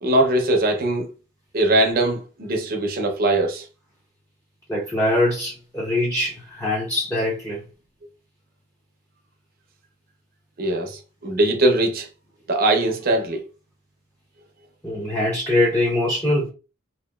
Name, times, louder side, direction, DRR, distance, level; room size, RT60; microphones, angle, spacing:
voice 1, 0.0-1.1 1.5-3.7 10.6-12.1 12.5-13.4, right 1 dB, 45° right, 0.5 m, -21 dB
voice 2, 4.7-7.6 14.8-16.5, left 1 dB, 10° left, 0.5 m, -23 dB
2.8 x 2.5 x 2.2 m
head